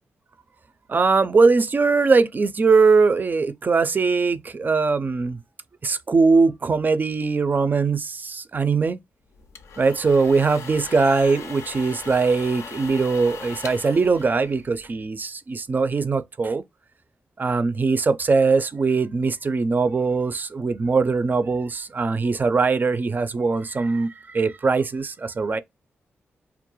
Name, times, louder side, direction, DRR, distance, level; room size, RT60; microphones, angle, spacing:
voice 1, 0.9-5.4 5.8-9.0 9.8-16.6 17.4-25.6, right 4 dB, 40° right, 0.3 m, -21 dB
sound 1, 9.3-15.1, left 5 dB, 75° left, 0.4 m, -39 dB
2.3 x 2.0 x 2.9 m
cardioid pair, 55°, 5 cm